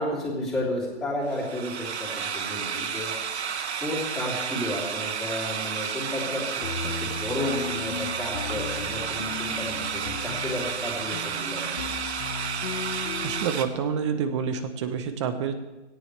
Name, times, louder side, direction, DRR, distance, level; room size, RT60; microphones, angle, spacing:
voice 1, 0.0-3.1 3.8-12.0, left 1 dB, ahead, -7 dB, 3.1 m, -32 dB
sound 1, 1.3-13.7, right 7 dB, 65° right, 1.4 m, -31 dB
sound 2, 6.6-13.5, left 6 dB, 55° left, 1.4 m, -36 dB
voice 2, 13.2-15.5, right 7 dB, 25° right, 10 dB, 0.9 m, -28 dB
19.0 x 17.0 x 3.4 m, 1.1 s
hypercardioid pair, 155°, 35 cm